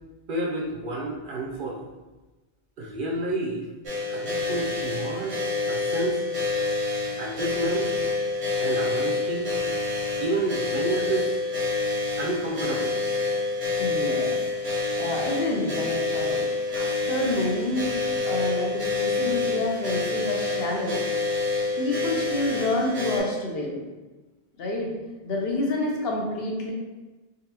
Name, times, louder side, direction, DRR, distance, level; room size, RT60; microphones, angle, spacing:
voice 1, 0.3-1.9 2.8-3.7 4.1-5.4 5.7-6.2 7.2-7.9 8.6-9.5 10.2-11.4 12.2-13.0, right 2 dB, 60° right, -2 dB, 0.7 m, -30 dB
sound 1, 3.8-23.2, left 3 dB, 85° right, 1.3 m, -27 dB
voice 2, 13.8-14.4 15.0-16.4 16.7-17.9 18.2-21.0 21.8-23.8 24.6-24.9 25.2-26.7, left 2 dB, 65° left, -1 dB, 0.9 m, -28 dB
3.9 x 2.6 x 2.7 m, 1.2 s
omnidirectional pair, 1.1 m